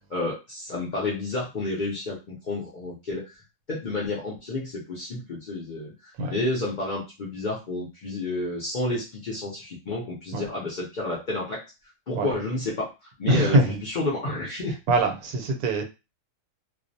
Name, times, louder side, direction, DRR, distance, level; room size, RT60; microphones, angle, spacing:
voice 1, 0.1-3.3 3.7-11.6 12.1-12.9 13.2-14.8, left 2 dB, 80° left, 0.4 m, -30 dB
voice 2, 13.3-13.8 14.9-15.8, right 2 dB, 80° right, 1.1 m, -23 dB
2.4 x 2.0 x 2.6 m
omnidirectional pair, 1.5 m